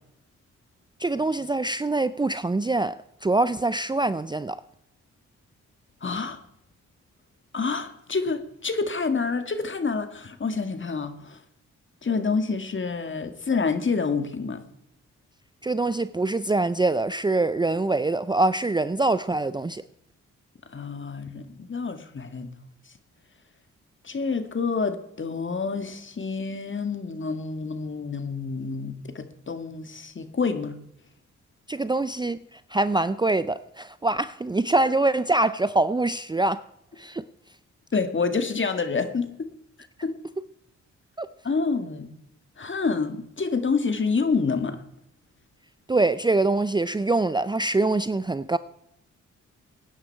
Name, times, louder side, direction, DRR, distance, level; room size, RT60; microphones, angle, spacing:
voice 1, 1.0-3.0 3.2-4.6 15.6-19.8 31.7-36.6 37.0-37.2 41.2-41.3 45.9-48.6, right 2 dB, 15° right, 0.5 m, -24 dB
voice 2, 6.0-6.4 7.5-11.4 12.0-14.7 20.7-22.5 22.9-23.0 24.0-30.8 37.9-39.5 40.0-40.2 41.4-42.1 42.6-44.8, left 4 dB, 40° left, 1.9 m, -28 dB
17.5 x 9.8 x 4.6 m
cardioid pair, 60°, 30 cm